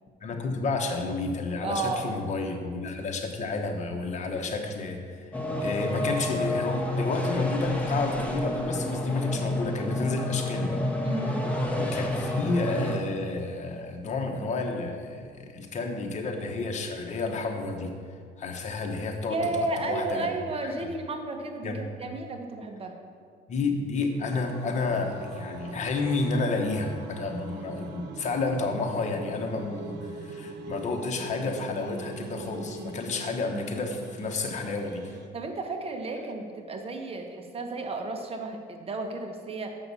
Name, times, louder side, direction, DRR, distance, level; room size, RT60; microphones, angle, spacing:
voice 1, 0.2-5.3 5.6-10.8 11.7-17.9 18.4-20.3 20.8-20.9 21.6-21.9 23.5-35.2, left 3 dB, 45° left, 3 dB, 1.2 m, -31 dB
voice 2, 1.6-2.1 11.0-11.5 19.3-23.0 35.3-39.8, right 3 dB, 35° right, 4 dB, 1.1 m, -33 dB
sound 1, 5.3-13.0, left 1 dB, 10° left, 1.2 m, -29 dB
sound 2, 24.2-35.3, right 3 dB, 80° right, 1.0 m, -42 dB
7.2 x 5.9 x 6.9 m, 2.1 s
cardioid pair, 110°, 17 cm